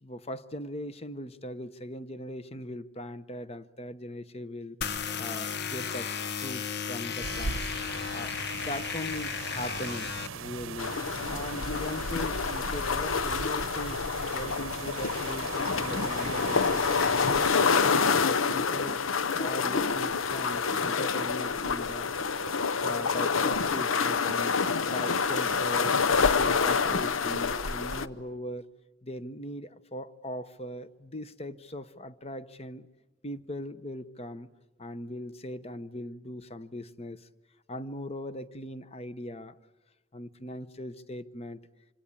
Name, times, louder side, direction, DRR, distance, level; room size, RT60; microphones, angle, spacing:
voice 1, 0.0-4.8 5.2-6.1 6.4-7.6 8.1-10.1 10.3-10.9 11.3-16.9 17.3-22.1 22.8-26.0 26.3-28.7 29.0-32.9 33.2-34.5 34.8-37.3 37.7-39.6 40.1-41.6, left 1 dB, 30° left, 13 dB, 0.9 m, -39 dB
sound 1, 4.8-10.3, left 7 dB, 55° left, 1.0 m, -34 dB
sound 2, 7.2-17.5, right 5 dB, 85° right, 0.8 m, -39 dB
sound 3, 10.8-28.1, left 5 dB, 85° left, 0.8 m, -27 dB
26.5 x 26.0 x 8.5 m, 1.2 s
head